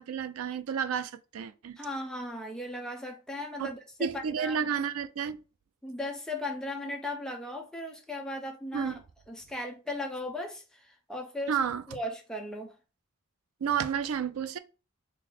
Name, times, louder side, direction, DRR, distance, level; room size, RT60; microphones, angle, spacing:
voice 1, 0.0-1.8 3.6-3.7 4.0-5.4 8.7-9.0 11.5-11.8 13.6-14.6, right 7 dB, 90° right, 0.4 m, -31 dB
voice 2, 1.8-4.7 5.8-8.9 9.3-11.6 11.9-12.7, left 1 dB, 5° left, 0.6 m, -37 dB
3.7 x 2.0 x 4.4 m
head